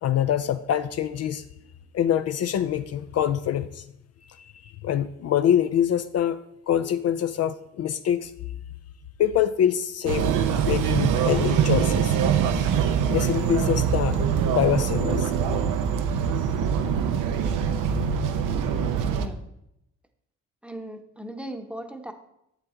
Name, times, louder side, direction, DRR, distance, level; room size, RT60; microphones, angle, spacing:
voice 1, 0.0-1.4 1.9-3.8 4.6-6.4 6.7-8.3 9.2-10.3 10.7-12.2 13.1-15.3, left 10 dB, 55° left, 10 dB, 0.4 m, -25 dB
sound 1, 10.1-19.3, right 7 dB, 85° right, 0.7 m, -23 dB
voice 2, 20.6-22.1, right 1 dB, 5° right, 5 dB, 0.9 m, -37 dB
7.6 x 7.2 x 3.7 m, 0.80 s
cardioid pair, 90°, 30 cm